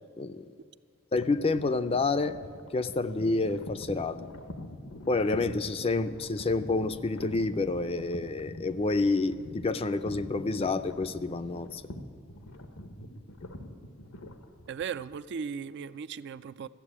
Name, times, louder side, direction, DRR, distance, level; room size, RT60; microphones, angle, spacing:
sound 1, 1.1-15.2, left 1 dB, 85° left, 1.1 m, -44 dB
voice 1, 1.1-2.4 2.7-4.2 5.1-11.8, left 3 dB, 25° left, 11 dB, 0.4 m, -28 dB
voice 2, 14.7-16.7, right 6 dB, 55° right, 15 dB, 0.3 m, -37 dB
13.5 x 7.3 x 9.8 m, 2.2 s
head